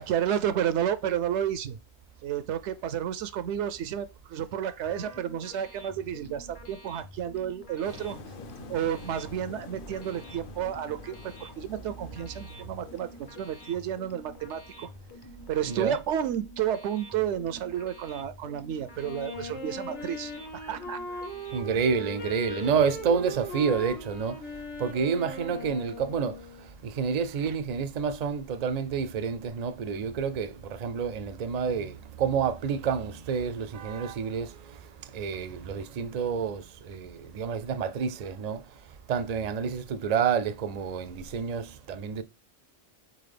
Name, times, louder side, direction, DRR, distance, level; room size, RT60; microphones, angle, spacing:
voice 1, 0.0-1.8 2.2-8.2 8.7-14.9 15.5-21.0 21.7-21.8 27.4-27.6, right 10 dB, 85° right, 0.9 m, -31 dB
sound 1, 4.8-23.3, left 1 dB, 25° left, 0.6 m, -49 dB
voice 2, 4.9-5.2 15.7-16.0 21.5-24.4 24.8-26.4 26.8-34.5 35.1-38.6 39.1-42.2, right 6 dB, 55° right, 0.4 m, -29 dB
sound 2, 7.8-16.1, left 3 dB, 55° left, 0.8 m, -48 dB
Wind instrument woodwind instrument, 19.0-26.7, left 1 dB, 80° left, 1.6 m, -39 dB
4.2 x 3.8 x 3.3 m
omnidirectional pair, 1.1 m